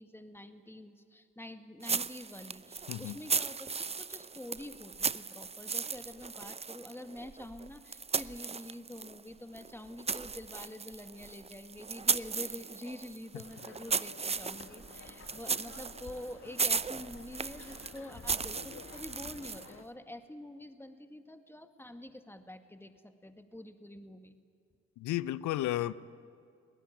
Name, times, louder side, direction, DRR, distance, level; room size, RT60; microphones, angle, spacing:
voice 1, 0.0-24.4, left 1 dB, 5° left, 7 dB, 2.0 m, -47 dB
sound 1, 1.8-9.2 9.5-19.8, right 5 dB, 20° right, 0.6 m, -36 dB
sound 2, 13.4-19.8, left 5 dB, 45° left, 1.9 m, -51 dB
voice 2, 25.0-25.9, left 14 dB, 65° left, 18 dB, 0.8 m, -33 dB
23.5 x 18.5 x 8.8 m, 2.4 s
hypercardioid pair, 45°, 32 cm